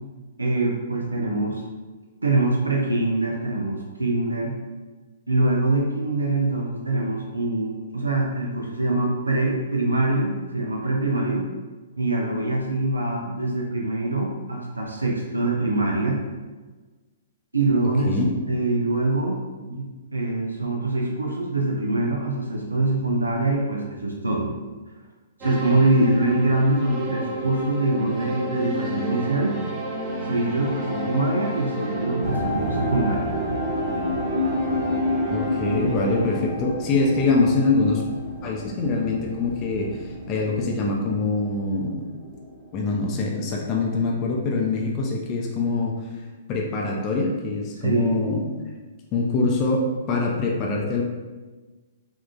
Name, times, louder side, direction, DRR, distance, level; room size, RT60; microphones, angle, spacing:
voice 1, 0.4-1.6 2.2-4.5 5.3-11.4 12.0-16.2 17.5-18.1 18.5-24.5 25.4-29.6 30.3-33.3 47.8-48.2, right 2 dB, 90° right, -1 dB, 0.4 m, -24 dB
sound 1, 25.4-36.4, right 1 dB, 25° right, 0.5 m, -31 dB
sound 2, 32.2-43.4 43.6-44.3 44.9-45.0, left 1 dB, 5° right, 1.1 m, -29 dB
voice 2, 35.3-38.0 38.4-42.1 42.7-45.9 46.5-48.4 49.1-51.0, left 3 dB, 30° left, -1 dB, 0.4 m, -24 dB
3.6 x 2.3 x 2.3 m, 1.3 s
figure-of-eight pair, 120°, 0 cm